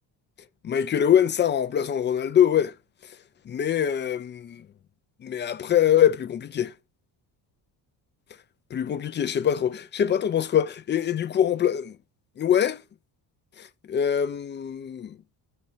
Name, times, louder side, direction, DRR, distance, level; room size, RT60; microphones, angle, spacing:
voice 1, 0.6-2.7 3.5-4.7 5.2-6.7 8.7-12.0 12.4-12.8 13.6-15.2, left 9 dB, 25° left, 0.3 m, -23 dB
6.6 x 4.3 x 5.4 m
cardioid pair, 155°, 44 cm